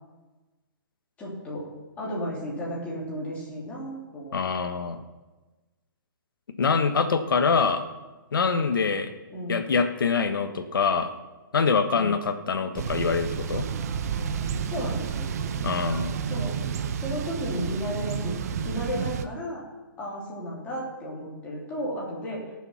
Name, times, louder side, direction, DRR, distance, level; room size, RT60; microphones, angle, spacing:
voice 1, 1.2-1.7 2.0-4.4 9.3-9.7 11.9-12.2 14.6-15.3 16.3-16.6 16.9-18.3 18.6-19.6 20.0-22.5, equal, 10° left, -5 dB, 3.2 m, -33 dB
voice 2, 4.3-5.0 6.6-7.8 8.3-9.1 9.5-11.1 11.5-13.7 15.6-16.2, left 5 dB, 85° left, 8 dB, 1.4 m, -24 dB
Thunder / Bicycle, 12.8-19.3, right 7 dB, 45° right, 0.8 m, -30 dB
18.0 x 7.2 x 5.8 m, 1.2 s
hypercardioid pair, 165°, 11 cm